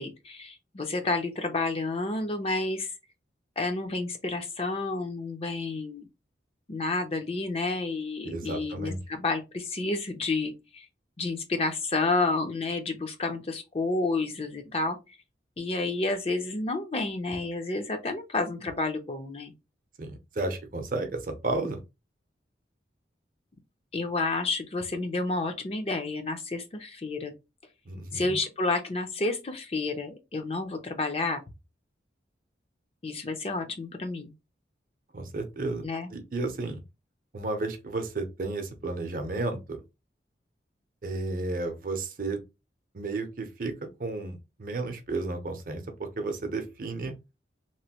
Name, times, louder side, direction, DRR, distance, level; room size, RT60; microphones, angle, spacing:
voice 1, 0.0-2.9 3.6-6.1 6.7-10.9 11.2-15.0 15.6-19.5 23.9-27.3 28.1-31.4 33.0-34.3 35.8-36.1, left 3 dB, 30° left, 0.5 m, -30 dB
voice 2, 8.2-9.0 20.0-21.8 27.9-28.4 35.1-36.8 37.3-39.8 41.0-42.4 42.9-47.1, right 2 dB, 50° right, 0.6 m, -33 dB
3.0 x 2.5 x 2.8 m
head